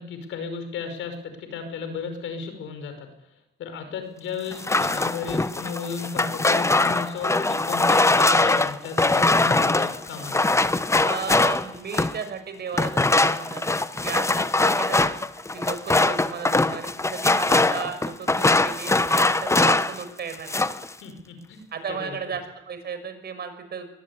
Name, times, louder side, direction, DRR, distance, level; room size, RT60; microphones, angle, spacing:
voice 1, 0.0-10.5 21.0-22.4, left 6 dB, 80° left, 8 dB, 5.4 m, -34 dB
sound 1, 4.5-12.2 12.7-20.0 20.3-20.9, left 2 dB, 15° left, 1.1 m, -22 dB
voice 2, 11.0-13.7 14.0-15.2 15.5-20.7 21.7-23.9, right 6 dB, 55° right, 8 dB, 5.7 m, -34 dB
23.0 x 17.0 x 9.8 m, 0.87 s
cardioid pair, 90°, 20 cm